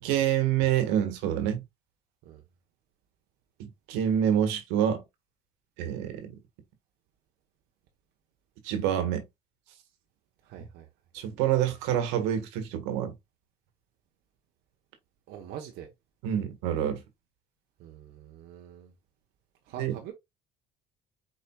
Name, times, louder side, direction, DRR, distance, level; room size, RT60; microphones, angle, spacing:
voice 1, 0.0-1.6 3.6-5.0 5.8-6.3 8.6-9.2 11.1-13.1 16.2-17.0 19.8-19.9, right 10 dB, 90° right, 1.4 m, -27 dB
voice 2, 10.4-10.9 15.3-15.9 17.8-18.9 19.6-20.1, right 10 dB, 70° right, 0.9 m, -44 dB
4.9 x 4.2 x 2.3 m
supercardioid pair, 90°, 17 cm